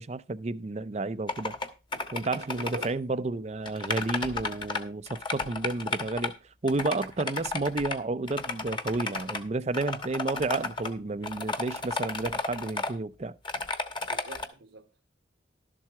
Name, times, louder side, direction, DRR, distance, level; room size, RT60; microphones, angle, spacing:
voice 1, 0.0-1.5 2.1-6.3 6.6-13.3, right 3 dB, 35° right, 0.5 m, -31 dB
sound 1, 1.3-1.7 1.9-2.9 3.7-4.8 5.1-6.3 6.7-8.0 8.3-9.4 9.7-10.9 11.2-12.9 13.4-14.5, left 3 dB, 25° left, 1.2 m, -33 dB
voice 2, 2.5-2.9 14.1-15.1, right 3 dB, 80° right, 1.2 m, -46 dB
12.0 x 7.4 x 4.7 m
head